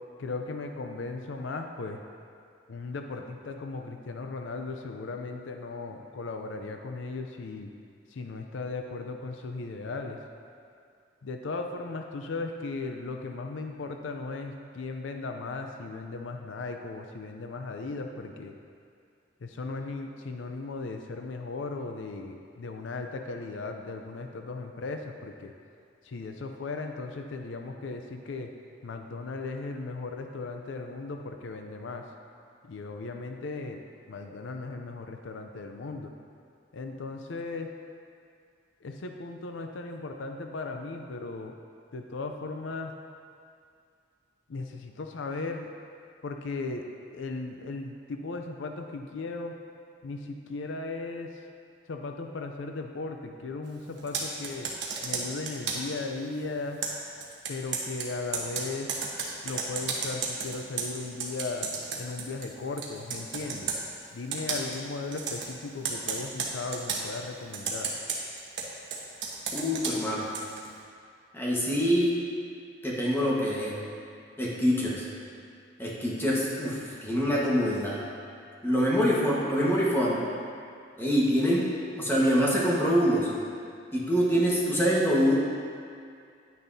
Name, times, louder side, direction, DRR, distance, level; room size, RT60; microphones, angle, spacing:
voice 1, 0.2-2.0 2.7-7.7 8.1-10.2 11.2-18.5 19.4-25.5 26.0-28.5 28.8-32.1 32.6-33.8 34.1-36.1 36.7-37.7 38.8-41.5 41.9-42.9 44.5-45.7 46.2-46.9 47.1-49.6 50.0-51.3 51.9-54.7 55.0-56.8 57.5-58.9 59.4-63.7 64.1-67.9, left 3 dB, 80° left, 4 dB, 0.5 m, -37 dB
Computer keyboard, 54.0-56.0 56.8-62.5 62.8-63.8 64.3-64.8 65.1-65.5 65.8-67.1 67.5-70.7, right 5 dB, 70° right, 1.1 m, -33 dB
voice 2, 69.5-70.3 71.3-72.2 72.8-73.8 74.4-75.0 75.8-78.0 78.6-80.2 81.0-83.3 83.9-85.4, equal, 10° left, -6 dB, 1.3 m, -25 dB
9.8 x 9.1 x 2.7 m, 2.3 s
head